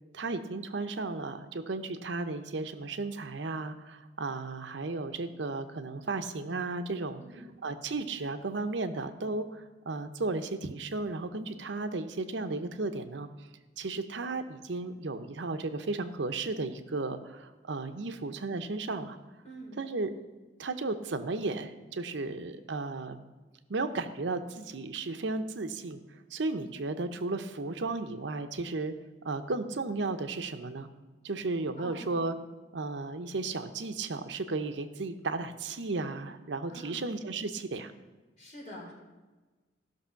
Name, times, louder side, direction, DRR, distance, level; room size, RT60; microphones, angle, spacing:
voice 1, 0.1-7.2 7.6-13.5 13.8-19.2 19.8-20.1 20.6-23.2 23.7-28.9 29.2-30.9 31.2-32.3 32.7-37.9, right 3 dB, 75° right, 9 dB, 0.7 m, -34 dB
voice 2, 19.4-19.8 31.8-32.1 36.7-37.0 38.4-38.9, right 1 dB, 40° left, -3 dB, 3.9 m, -46 dB
14.5 x 6.1 x 5.7 m, 1.3 s
head